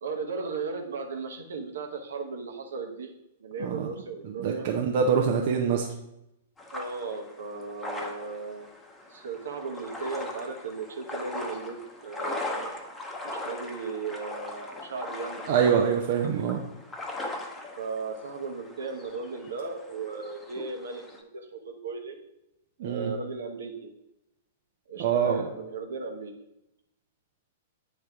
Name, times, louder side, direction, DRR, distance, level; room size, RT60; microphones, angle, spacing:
voice 1, 0.0-3.1 3.4-4.7 6.7-8.7 9.1-12.7 13.2-15.5 16.2-16.4 17.8-22.2 22.8-23.9 24.9-26.3, right 4 dB, 75° right, 3 dB, 1.0 m, -36 dB
voice 2, 4.2-5.9 15.5-16.6 22.8-23.1 25.0-25.5, right 7 dB, 55° right, 1 dB, 0.6 m, -25 dB
sound 1, 6.6-21.2, left 2 dB, 15° left, 0.9 m, -40 dB
9.0 x 3.2 x 3.5 m, 0.87 s
hypercardioid pair, 110°, 0 cm